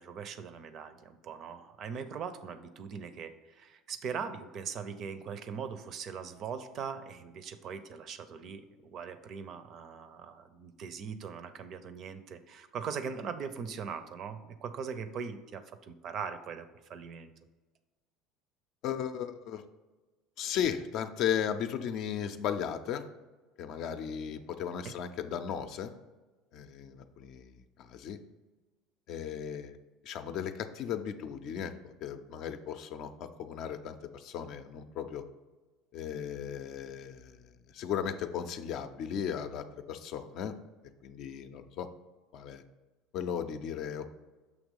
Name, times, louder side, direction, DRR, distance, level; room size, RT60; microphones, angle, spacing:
voice 1, 0.0-17.3 24.8-24.9, right 6 dB, 50° right, 11 dB, 0.5 m, -40 dB
voice 2, 18.8-19.6 20.4-23.0 23.6-25.9 26.5-28.2 29.1-29.7 30.0-35.2 35.9-37.4 37.7-40.6 41.0-41.9 42.3-42.6 43.1-44.1, left 8 dB, 60° left, 8 dB, 0.5 m, -36 dB
6.3 x 2.9 x 5.4 m, 1.2 s
hypercardioid pair, 85°, 0 cm